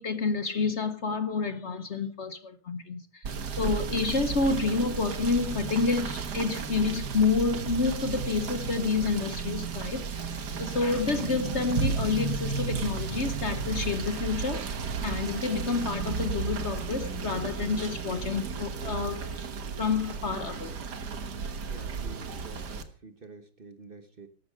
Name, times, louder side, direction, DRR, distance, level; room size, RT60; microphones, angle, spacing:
voice 1, 0.0-14.7 15.0-19.4 19.8-20.7, left 4 dB, 45° left, 1.2 m, -29 dB
Rain / Motor vehicle (road), 3.2-22.8, right 5 dB, 85° right, 2.0 m, -33 dB
voice 2, 21.7-24.3, right 3 dB, 35° right, 1.4 m, -48 dB
14.0 x 12.0 x 5.2 m
omnidirectional pair, 1.7 m